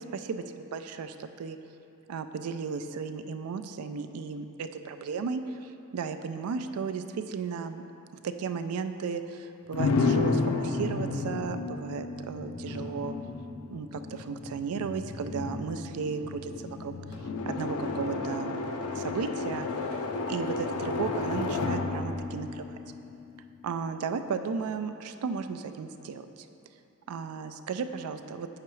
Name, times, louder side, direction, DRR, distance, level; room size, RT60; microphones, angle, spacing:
voice 1, 0.0-1.6 2.1-7.8 8.2-13.1 13.7-16.5 16.8-16.9 17.4-18.7 18.9-20.0 20.3-22.8 23.6-26.5 27.1-28.5, right 5 dB, 80° right, 9 dB, 0.4 m, -35 dB
sound 1, 9.7-23.6, left 3 dB, 75° left, 0.5 m, -32 dB
7.6 x 5.7 x 3.1 m, 2.7 s
head